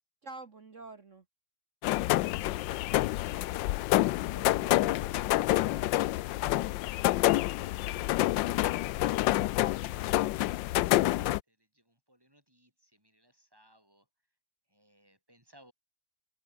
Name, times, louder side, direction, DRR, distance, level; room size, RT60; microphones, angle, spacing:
voice 1, 0.2-1.2 4.3-5.9 6.2-6.7, right 3 dB, 45° right, 1.9 m, -49 dB
sound 1, 1.8-11.4, left 16 dB, 85° left, 1.3 m, -28 dB
voice 2, 2.3-3.9 10.8-14.1 14.7-15.7, equal, 10° right, 7.2 m, -66 dB
omnidirectional pair, 1.9 m